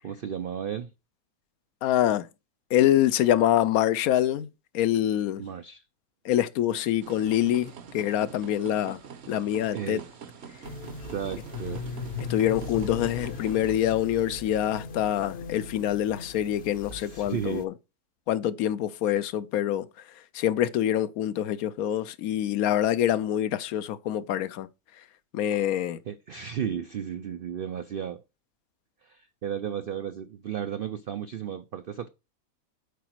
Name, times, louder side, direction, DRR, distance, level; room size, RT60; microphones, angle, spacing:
voice 1, 0.0-0.9 5.4-5.8 9.7-10.1 11.1-11.9 17.0-17.7 26.1-28.2 29.0-32.1, right 8 dB, 75° right, 0.5 m, -34 dB
voice 2, 1.8-2.3 2.7-4.5 4.7-5.4 6.2-9.0 9.3-10.0 12.3-17.7 18.3-19.9 20.3-24.7 25.3-26.0, left 11 dB, 80° left, 1.1 m, -25 dB
sound 1, 7.0-13.8, right 7 dB, 55° right, 1.0 m, -45 dB
sound 2, 10.6-17.7, left 4 dB, 50° left, 0.9 m, -38 dB
8.2 x 4.9 x 4.5 m
omnidirectional pair, 1.5 m